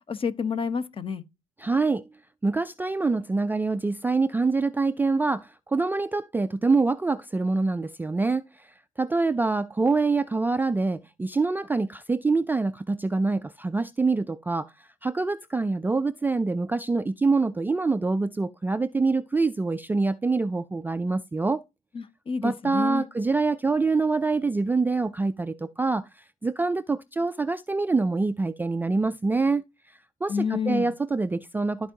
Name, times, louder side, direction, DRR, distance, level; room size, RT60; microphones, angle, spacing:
voice 1, 0.1-1.2 21.9-23.1 30.3-30.9, left 6 dB, 30° left, 1.0 m, -29 dB
voice 2, 1.6-2.1 2.4-8.7 9.0-21.6 22.4-29.6 30.2-31.9, right 3 dB, 10° right, 0.4 m, -25 dB
13.0 x 4.6 x 2.8 m
cardioid pair, 110°, 17 cm